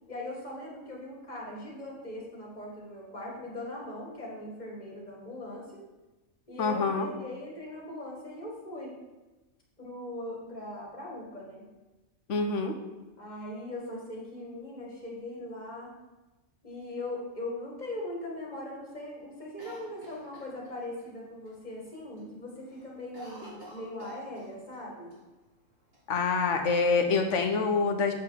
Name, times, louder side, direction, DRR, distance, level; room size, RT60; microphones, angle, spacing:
voice 1, 0.1-5.8 6.5-9.0 9.8-11.6 13.2-15.9 16.6-25.1, left 1 dB, 30° left, -3 dB, 2.3 m, -40 dB
voice 2, 6.6-7.1 12.3-12.8 26.1-28.1, left 4 dB, 60° left, 5 dB, 1.3 m, -26 dB
Cough, 19.6-21.1 21.4-21.5 21.9-22.3 22.6-24.8 25.1-25.2 25.9-26.7, left 1 dB, 45° right, 2.8 m, -49 dB
7.9 x 5.9 x 5.8 m, 1.1 s
omnidirectional pair, 1.4 m